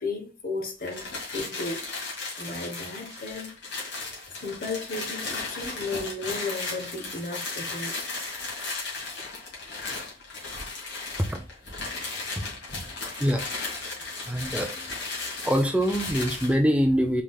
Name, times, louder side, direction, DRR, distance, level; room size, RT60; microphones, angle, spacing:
voice 1, 0.0-1.9 2.4-3.5 4.3-8.0, left 3 dB, 50° left, 1.1 m, -34 dB
sound 1, 0.8-16.6, left 3 dB, 65° left, 2.0 m, -35 dB
voice 2, 14.3-14.9 15.4-17.2, equal, 5° right, 0.4 m, -24 dB
4.8 x 3.9 x 2.3 m
head